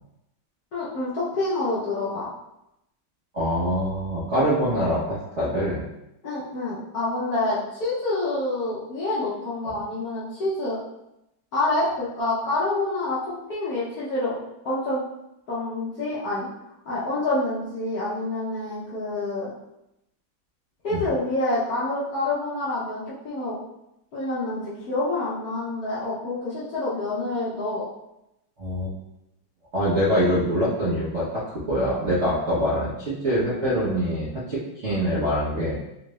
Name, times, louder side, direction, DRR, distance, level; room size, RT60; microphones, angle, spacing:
voice 1, 0.7-2.3 6.2-10.8 11.5-14.3 14.6-15.0 15.5-16.5 16.9-19.5 20.8-23.6 24.1-27.8, left 2 dB, 60° left, -9 dB, 1.0 m, -27 dB
voice 2, 3.3-5.8 9.6-9.8 20.9-21.1 28.6-28.9 29.7-31.4 31.7-35.8, equal, 50° right, -10 dB, 0.9 m, -24 dB
3.8 x 2.4 x 3.0 m, 0.86 s
omnidirectional pair, 2.3 m